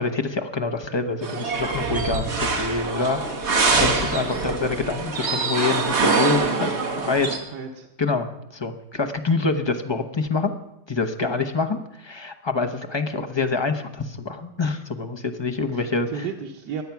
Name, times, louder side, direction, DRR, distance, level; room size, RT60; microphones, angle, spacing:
voice 1, 0.0-6.7 7.0-7.3 8.0-8.3 8.5-10.5 10.9-16.2, left 4 dB, 25° left, 6 dB, 0.6 m, -26 dB
sound 1, 1.2-7.4, right 4 dB, 40° right, 1.7 m, -24 dB
voice 2, 3.7-4.3 6.3-7.9 11.3-11.4 15.6-16.8, right 6 dB, 85° right, 1 dB, 1.7 m, -35 dB
22.5 x 8.1 x 5.9 m, 0.88 s
omnidirectional pair, 1.8 m